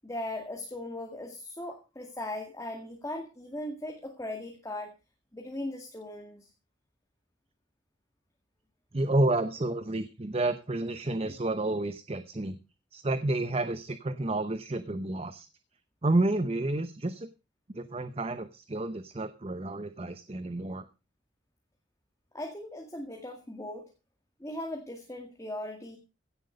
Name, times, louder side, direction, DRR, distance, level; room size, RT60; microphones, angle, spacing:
voice 1, 0.0-4.9 5.3-6.5 11.2-11.3 22.3-23.8 24.4-26.0, left 1 dB, 15° left, 2 dB, 2.1 m, -38 dB
voice 2, 8.9-12.6 12.9-15.5 16.0-17.3 17.7-20.9, right 2 dB, 30° right, 11 dB, 0.8 m, -30 dB
16.5 x 7.9 x 5.2 m, 0.31 s
head